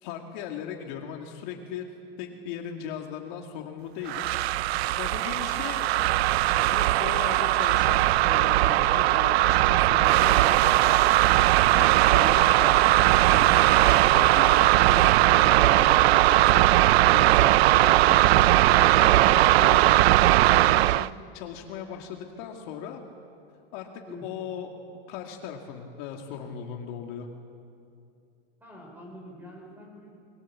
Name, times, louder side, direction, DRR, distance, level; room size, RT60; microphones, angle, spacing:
voice 1, 0.0-1.9 2.2-4.3 4.5-5.9 6.6-11.2 11.7-19.9 20.5-21.1 21.3-23.0 23.7-23.9 24.2-24.7 25.1-27.3, left 8 dB, 50° left, 2 dB, 2.2 m, -38 dB
sound 1, 4.1-21.1, right 16 dB, 80° right, 0.5 m, -19 dB
voice 2, 5.3-5.6 24.1-24.3 28.6-30.1, left 1 dB, 5° right, 0 dB, 5.5 m, -45 dB
26.5 x 22.0 x 7.4 m, 2.5 s
supercardioid pair, 160°, 31 cm